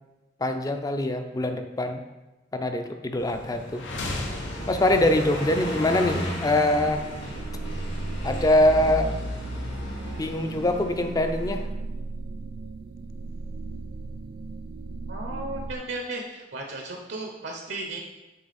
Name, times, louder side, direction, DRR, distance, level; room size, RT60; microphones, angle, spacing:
voice 1, 0.4-2.0 2.5-3.8 4.7-7.1 8.2-9.2 10.2-11.7, left 1 dB, 20° left, 7 dB, 0.4 m, -23 dB
Car passing by, 3.2-11.6, equal, 70° left, 1.5 m, -34 dB
sound 1, 3.7-7.7, left 2 dB, 90° left, 0.9 m, -37 dB
sound 2, 6.8-15.8, right 3 dB, 50° right, 0.3 m, -36 dB
voice 2, 15.1-18.0, right 2 dB, 70° right, 1 dB, 0.8 m, -35 dB
8.4 x 3.3 x 4.1 m, 1.1 s
head